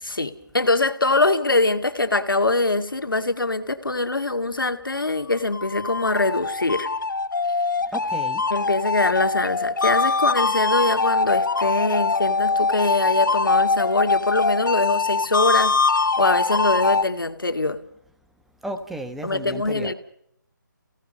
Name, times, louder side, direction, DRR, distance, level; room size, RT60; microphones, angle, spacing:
voice 1, 0.0-6.9 8.5-15.8 16.2-17.8 19.2-19.9, left 2 dB, 90° left, 7 dB, 2.2 m, -23 dB
sound 1, 5.3-17.0, left 4 dB, 65° left, 1.3 m, -23 dB
voice 2, 7.9-8.4 15.5-15.7 18.6-19.9, right 1 dB, ahead, 7 dB, 1.1 m, -33 dB
30.0 x 17.5 x 5.4 m, 0.73 s
figure-of-eight pair, 160°, 11 cm